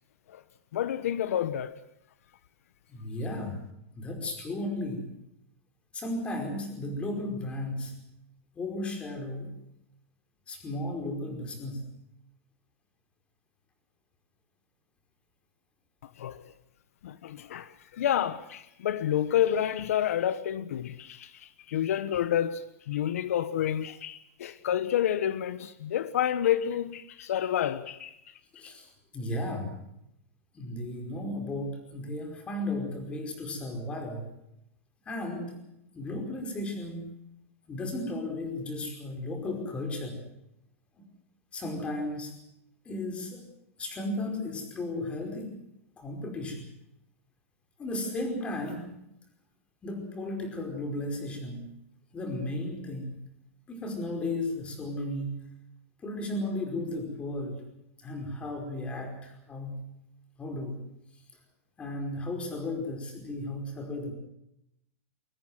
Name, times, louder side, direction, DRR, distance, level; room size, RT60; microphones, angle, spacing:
voice 1, 0.7-1.7 16.0-16.4 17.0-28.2 28.6-28.7, left 10 dB, 75° left, 1.2 m, -29 dB
voice 2, 2.9-3.6 3.9-5.1 5.9-7.9 8.5-9.5 10.5-11.9 28.6-29.8 30.5-34.3 35.0-35.6 35.9-37.2 37.7-40.2 41.0-41.1 41.5-42.3 42.8-43.4 43.8-45.5 46.0-46.7 47.8-49.0 49.8-51.7 52.1-53.2 53.7-55.4 56.0-57.6 58.0-59.8 60.4-60.8 61.8-64.1, left 1 dB, 15° left, 5.0 m, -34 dB
23.0 x 19.0 x 7.7 m
supercardioid pair, 160°, 8 cm